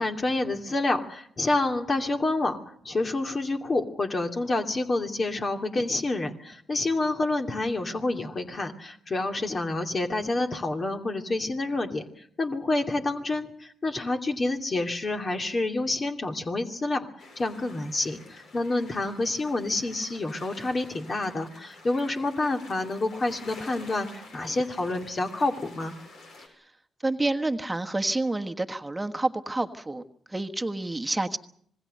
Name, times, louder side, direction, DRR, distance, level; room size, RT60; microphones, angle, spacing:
voice 1, 0.0-2.6 2.8-12.0 12.4-17.1 17.4-24.1 24.3-25.9, left 2 dB, 40° left, 4 dB, 2.6 m, -28 dB
sound 1, 17.2-26.5, left 2 dB, 70° left, 6.7 m, -49 dB
voice 2, 27.0-30.0 30.3-31.4, right 2 dB, 15° right, 6 dB, 1.4 m, -28 dB
26.0 x 20.0 x 6.6 m, 0.66 s
hypercardioid pair, 50°, 0 cm